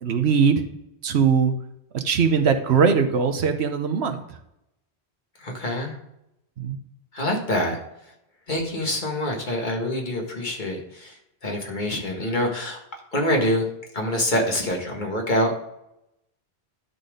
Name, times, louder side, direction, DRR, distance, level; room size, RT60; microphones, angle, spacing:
voice 1, 0.0-0.7 1.0-1.6 1.9-4.4 6.6-6.8, right 6 dB, 85° right, 7 dB, 1.2 m, -21 dB
voice 2, 5.4-6.0 7.1-7.8 8.5-11.1 11.4-12.8 13.1-13.7 13.9-15.5, left 1 dB, 50° left, 1 dB, 1.8 m, -25 dB
11.0 x 4.2 x 5.0 m, 0.83 s
omnidirectional pair, 1.1 m